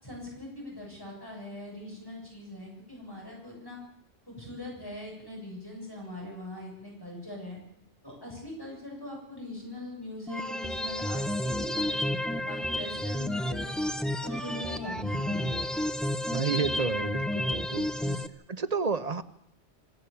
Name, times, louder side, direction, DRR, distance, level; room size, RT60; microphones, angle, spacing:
voice 1, 0.0-3.8 4.3-7.6 8.0-13.6 14.2-15.6 18.0-18.2, left 1 dB, 20° left, -2 dB, 7.4 m, -41 dB
sound 1, 10.3-18.3, left 1 dB, ahead, 0.9 m, -31 dB
voice 2, 16.3-17.9 18.1-18.2 18.5-19.2, right 5 dB, 35° right, 11 dB, 0.9 m, -30 dB
27.0 x 15.5 x 7.0 m, 0.76 s
omnidirectional pair, 1.2 m